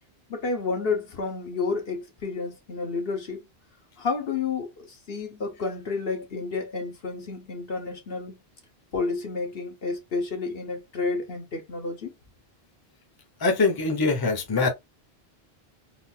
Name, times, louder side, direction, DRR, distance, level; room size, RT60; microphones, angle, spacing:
voice 1, 0.3-3.4 4.0-8.4 8.9-12.1, left 4 dB, 65° left, 1.2 m, -30 dB
voice 2, 13.4-14.7, left 3 dB, 25° left, 0.8 m, -23 dB
4.0 x 2.5 x 2.7 m
omnidirectional pair, 1.1 m